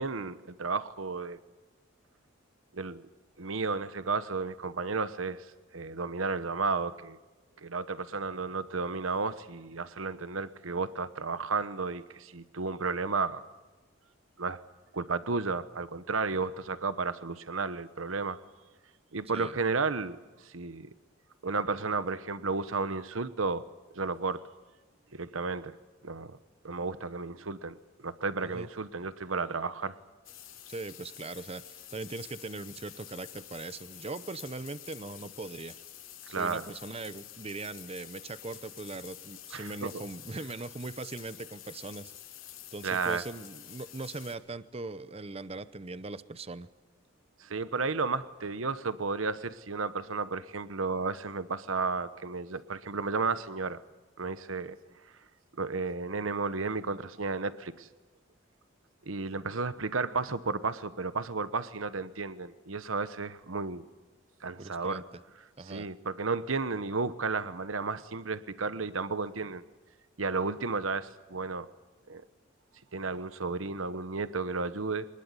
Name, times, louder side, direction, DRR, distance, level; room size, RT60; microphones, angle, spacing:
voice 1, 0.0-1.4 2.7-3.0 3.4-5.5 5.7-7.2 7.6-13.4 14.4-14.6 14.9-18.4 19.1-20.9 21.4-23.6 23.9-24.4 25.2-25.7 26.0-26.4 26.6-27.8 28.0-30.0 36.3-36.7 39.5-39.9 42.8-43.2 47.4-53.8 54.2-54.8 55.6-57.9 59.1-63.8 64.4-65.0 65.6-69.6 70.2-71.7 72.1-72.2 72.9-75.1, right 4 dB, 80° right, 13 dB, 1.1 m, -33 dB
sound 1, 30.2-44.3, left 12 dB, 75° left, 3.6 m, -49 dB
voice 2, 30.7-35.8 36.3-42.1 42.7-46.7 64.6-65.2 65.6-65.9, right 3 dB, 30° right, 15 dB, 0.8 m, -40 dB
24.5 x 20.5 x 9.7 m, 1.2 s
head